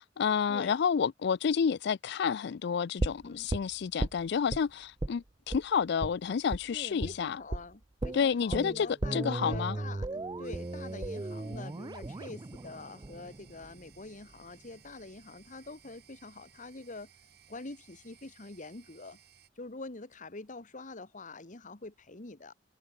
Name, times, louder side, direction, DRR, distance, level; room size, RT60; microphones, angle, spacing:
voice 1, 0.0-7.4 8.1-9.8, left 6 dB, 65° left, 0.4 m, -30 dB
sound 1, 3.0-4.6 5.0-5.2 5.5-5.6 6.0-6.1 6.5-6.6 7.0-7.2 7.5-7.6 8.0-14.0 14.3-14.4, right 2 dB, 20° right, 0.5 m, -36 dB
voice 2, 6.7-17.1 17.5-19.2 19.6-22.5, left 2 dB, 45° left, 1.6 m, -45 dB
sound 2, 10.4-19.5, right 9 dB, 60° right, 3.1 m, -61 dB
head